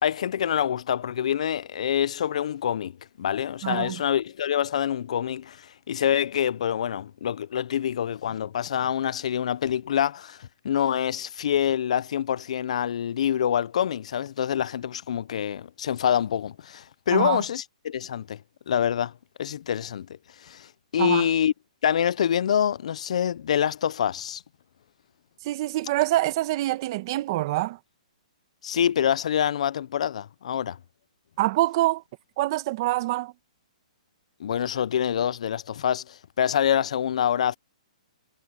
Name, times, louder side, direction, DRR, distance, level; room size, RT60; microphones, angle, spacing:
voice 1, 0.0-2.9 3.2-18.4 18.7-19.1 19.4-20.1 20.4-21.5 21.8-24.4 28.6-30.8 34.4-37.6, left 9 dB, 60° left, 0.5 m, -26 dB
voice 2, 3.6-4.0 17.1-17.4 21.0-21.3 25.4-27.8 31.4-32.0 32.4-33.3, right 17 dB, 35° right, 1.5 m, -25 dB
hypercardioid pair, 160°, 4 cm